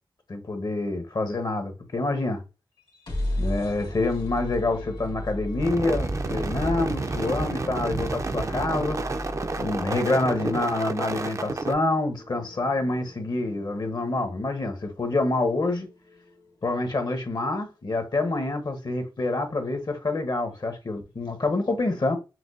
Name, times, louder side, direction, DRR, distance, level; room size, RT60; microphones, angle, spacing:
voice 1, 0.3-2.4 3.4-9.0 9.6-15.9 16.6-22.2, left 2 dB, 55° left, 0.9 m, -27 dB
sound 1, 2.8-16.6, left 1 dB, 85° left, 1.7 m, -37 dB
sound 2, 5.6-11.7, right 3 dB, 40° right, 0.4 m, -30 dB
5.7 x 2.2 x 2.5 m
wide cardioid pair, 95°, 9 cm